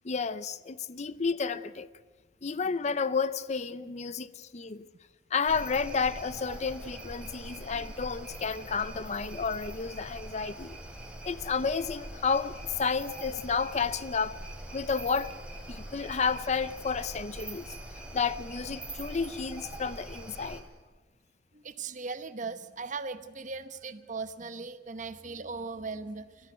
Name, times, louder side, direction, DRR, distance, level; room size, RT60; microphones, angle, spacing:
voice 1, 0.0-1.9 2.4-4.9 5.3-10.8 11.2-14.4 14.7-15.3 15.7-17.8 18.1-20.6, left 5 dB, 40° left, 0.5 m, -31 dB
sound 1, 5.5-20.6, right 1 dB, 5° right, 2.8 m, -43 dB
voice 2, 21.5-26.5, right 4 dB, 45° right, 1.0 m, -38 dB
22.0 x 13.5 x 9.2 m
head